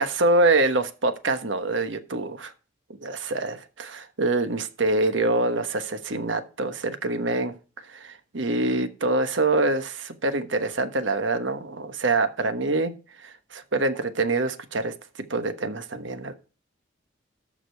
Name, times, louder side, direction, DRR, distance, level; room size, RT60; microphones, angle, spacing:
voice 1, 0.0-2.5 3.0-7.5 7.9-12.9 13.2-14.9 15.3-16.3, right 2 dB, 75° right, 1.2 m, -25 dB
13.5 x 5.1 x 4.6 m
head